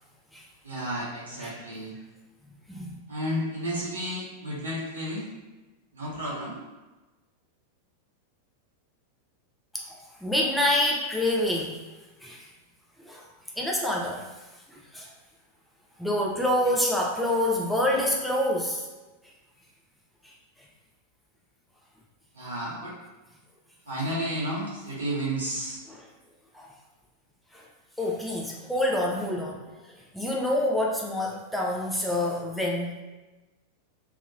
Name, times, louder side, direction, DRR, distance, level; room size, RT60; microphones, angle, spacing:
voice 1, 0.6-1.9 3.1-5.3 5.9-6.6 22.3-23.0 23.9-25.8, equal, 70° right, -6 dB, 1.0 m, -32 dB
voice 2, 2.7-3.0 9.7-11.8 12.2-12.5 13.0-13.3 13.6-14.2 14.7-15.1 16.0-18.9 20.2-20.3 25.9-26.0 26.5-26.7 27.5-27.6 28.0-29.6 30.1-33.0, left 1 dB, ahead, -3 dB, 0.4 m, -27 dB
2.8 x 2.7 x 2.5 m, 1.2 s
figure-of-eight pair, 90°, 0 cm